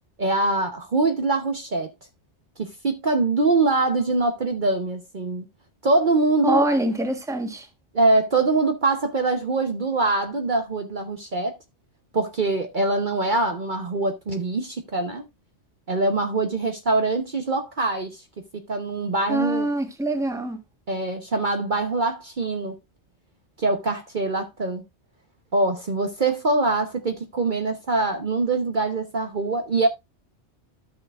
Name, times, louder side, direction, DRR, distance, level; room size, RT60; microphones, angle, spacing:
voice 1, 0.2-1.9 2.6-5.5 5.8-6.7 7.9-11.5 12.1-15.2 15.9-18.2 18.5-19.7 20.9-22.7 23.6-24.8 25.5-29.9, right 3 dB, 45° right, 1.0 m, -23 dB
voice 2, 6.4-7.7 19.3-20.6, right 1 dB, 5° right, 1.1 m, -24 dB
13.0 x 6.3 x 2.4 m
omnidirectional pair, 1.2 m